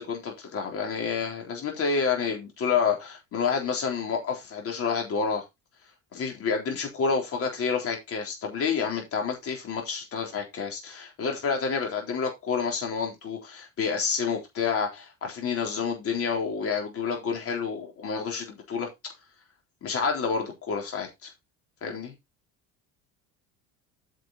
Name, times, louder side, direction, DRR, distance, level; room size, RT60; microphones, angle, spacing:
voice 1, 0.0-5.4 6.1-18.9 19.8-21.3 21.8-22.1, left 5 dB, 40° left, 3.8 m, -29 dB
9.2 x 6.5 x 4.2 m
cardioid pair, 155°, 35 cm